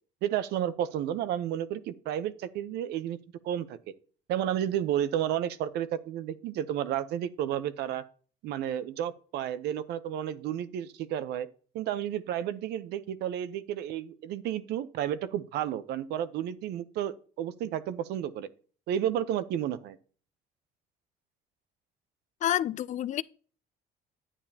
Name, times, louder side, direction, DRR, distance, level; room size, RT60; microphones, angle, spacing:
voice 1, 0.2-3.2 3.4-3.8 4.3-8.0 8.4-11.5 11.7-18.5 18.9-20.0, right 10 dB, 80° right, 0.7 m, -32 dB
voice 2, 22.4-23.2, left 11 dB, 45° left, 0.4 m, -28 dB
9.8 x 8.8 x 2.8 m
cardioid pair, 110°, 17 cm